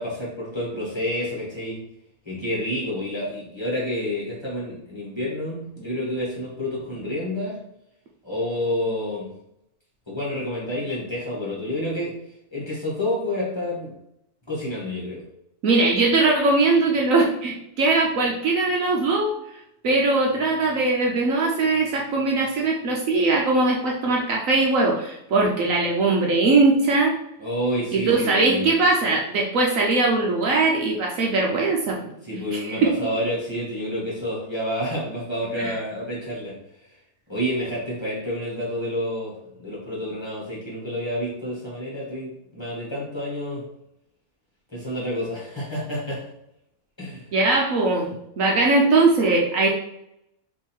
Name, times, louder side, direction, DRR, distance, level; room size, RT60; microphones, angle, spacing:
voice 1, 0.0-1.8 2.2-7.6 8.2-9.3 10.1-12.1 12.5-13.9 14.5-15.2 27.4-28.7 32.2-36.6 37.3-39.3 39.6-43.6 44.7-46.2 47.0-47.2, left 1 dB, 20° left, -6 dB, 1.5 m, -29 dB
voice 2, 15.6-19.4 19.8-27.2 27.9-32.0 32.5-32.9 35.5-35.7 47.3-48.1 48.4-49.7, right 3 dB, 65° right, -1 dB, 1.1 m, -20 dB
3.7 x 3.2 x 4.4 m, 0.79 s
omnidirectional pair, 1.6 m